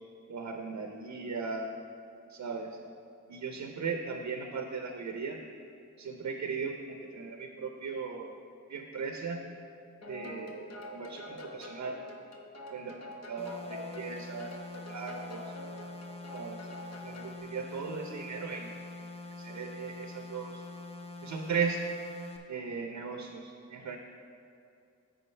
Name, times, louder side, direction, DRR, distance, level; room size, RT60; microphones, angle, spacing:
voice 1, 0.3-1.7 2.3-2.8 3.3-5.4 6.0-8.4 8.7-9.4 10.1-12.0 12.7-13.0 13.3-15.4 16.3-16.7 17.0-18.7 19.4-20.6 21.2-21.8 22.5-24.0, right 5 dB, 70° right, 4 dB, 0.7 m, -37 dB
sound 1, 10.0-17.4, left 1 dB, 60° left, 1.1 m, -46 dB
sound 2, 13.4-22.4, left 2 dB, 20° left, 0.7 m, -45 dB
14.0 x 5.0 x 3.2 m, 2.5 s
wide cardioid pair, 120°, 30 cm